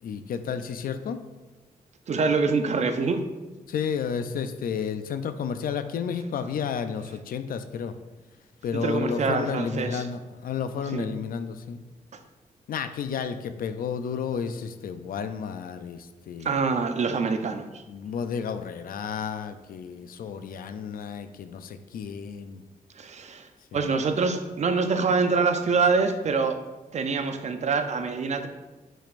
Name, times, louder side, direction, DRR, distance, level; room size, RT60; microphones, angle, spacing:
voice 1, 0.0-1.2 3.7-7.9 8.6-11.8 12.7-16.6 17.9-22.6 23.7-23.9, left 6 dB, 75° left, 10 dB, 0.4 m, -32 dB
voice 2, 2.1-3.2 8.7-10.0 10.9-11.1 16.4-17.8 23.0-26.6 26.9-28.5, right 4 dB, 50° right, 8 dB, 0.5 m, -25 dB
7.4 x 5.1 x 2.5 m, 1.2 s
wide cardioid pair, 125°, 15 cm